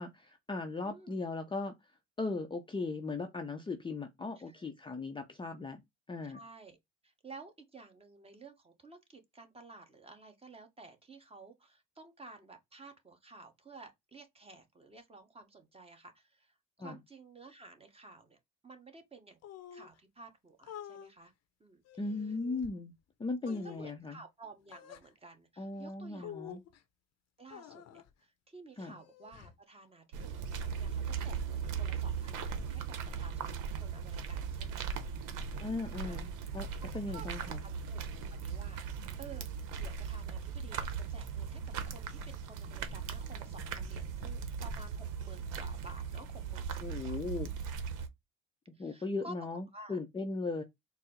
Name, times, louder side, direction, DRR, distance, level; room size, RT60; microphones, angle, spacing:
voice 1, 0.0-1.8 2.2-5.8 6.1-6.4 16.8-17.0 22.0-22.9 23.2-24.2 25.6-26.6 28.8-29.0 35.6-36.7 36.9-37.6 46.8-47.5 48.7-50.6, left 3 dB, 15° left, 0.5 m, -38 dB
voice 2, 0.8-1.2 4.4-4.7 6.2-6.8 7.0-19.4 19.7-21.3 21.6-21.8 22.3-22.4 23.5-26.3 27.4-35.0 36.0-36.2 37.1-39.5 39.8-47.2 47.5-47.6 48.7-49.3 49.7-50.0, right 3 dB, 20° right, 1.0 m, -53 dB
sound 1, 19.4-20.0 20.6-21.1 21.8-22.7 23.4-23.9 24.7-25.1 26.2-26.8 27.5-28.1 28.8-29.6, left 10 dB, 55° left, 0.7 m, -49 dB
sound 2, 30.1-48.1, right 6 dB, 80° right, 0.8 m, -38 dB
4.3 x 2.0 x 3.6 m
cardioid pair, 100°, 30 cm